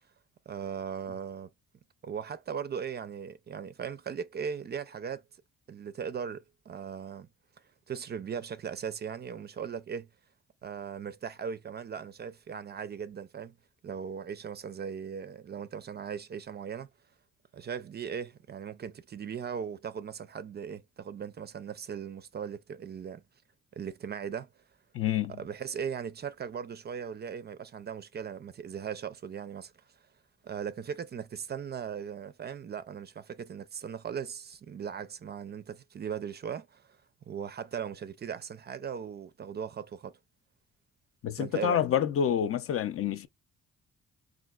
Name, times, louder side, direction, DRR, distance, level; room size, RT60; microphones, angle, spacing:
voice 1, 0.5-1.5 2.0-5.2 5.7-7.3 7.9-10.1 10.6-13.6 13.8-16.9 17.5-23.2 23.7-24.5 25.3-29.7 30.4-40.2 41.4-41.8, right 7 dB, 35° right, 0.4 m, -38 dB
voice 2, 24.9-25.3 41.2-43.3, left 9 dB, 50° left, 0.5 m, -28 dB
3.8 x 2.4 x 2.3 m
cardioid pair, 90°, 30 cm